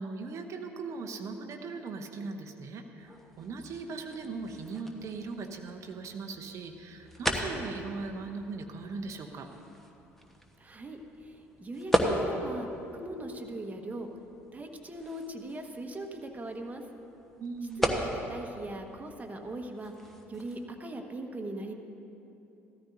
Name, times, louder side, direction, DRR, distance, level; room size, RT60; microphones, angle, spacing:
voice 1, 0.0-9.5 17.4-18.0, right 4 dB, 45° right, 4 dB, 0.8 m, -39 dB
sound 1, 3.0-20.7, equal, 5° left, 1.2 m, -37 dB
voice 2, 10.6-14.1 14.5-16.8 17.9-19.9 20.3-21.7, right 1 dB, 20° right, 3 dB, 1.3 m, -40 dB
15.5 x 13.5 x 2.6 m, 2.9 s
figure-of-eight pair, 55°, 7 cm